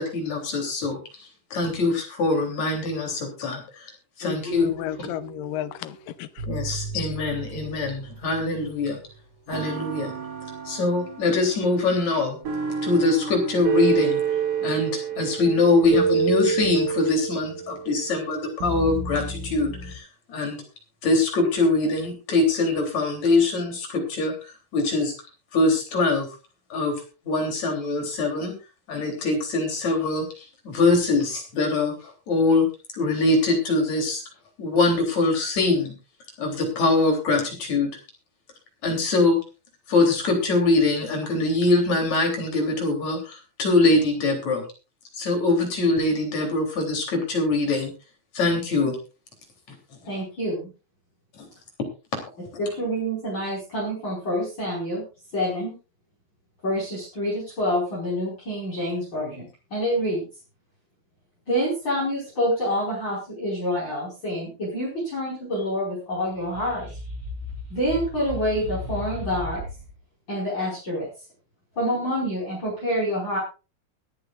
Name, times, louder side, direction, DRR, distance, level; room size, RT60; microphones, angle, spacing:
voice 1, 0.0-3.9 4.2-5.1 6.5-9.0 9.5-10.1 10.7-12.4 12.8-14.2 14.6-20.6 21.0-25.1 25.5-26.3 26.7-26.9 27.3-28.5 28.9-32.7 32.9-34.2 34.6-35.9 36.4-37.9 38.8-39.4 39.9-44.6 45.2-47.9 48.3-49.0 49.7-49.8 51.4-51.5, left 3 dB, 50° left, 4.5 m, -23 dB
voice 2, 4.2-6.3 6.9-7.1, left 13 dB, 80° left, 2.4 m, -33 dB
sound 1, 4.5-5.7 6.4-9.0 9.5-20.0, right 6 dB, 70° right, 4.9 m, -30 dB
voice 3, 50.1-50.7 52.6-55.0 55.3-55.7 56.6-60.2 61.5-66.9 67.7-69.6 70.3-71.1 71.8-73.4, equal, 30° left, 5.7 m, -27 dB
sound 2, 66.3-69.9, left 2 dB, 40° right, 5.5 m, -35 dB
23.0 x 9.7 x 2.5 m
omnidirectional pair, 4.1 m